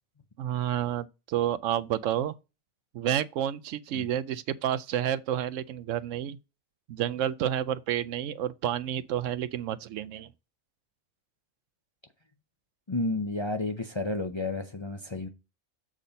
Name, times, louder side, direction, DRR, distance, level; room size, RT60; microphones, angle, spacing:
voice 1, 0.4-2.3 2.9-6.4 6.9-10.3, right 11 dB, 75° right, 0.9 m, -30 dB
voice 2, 12.9-15.3, left 2 dB, 30° left, 0.6 m, -31 dB
7.5 x 4.2 x 5.2 m
omnidirectional pair, 1.4 m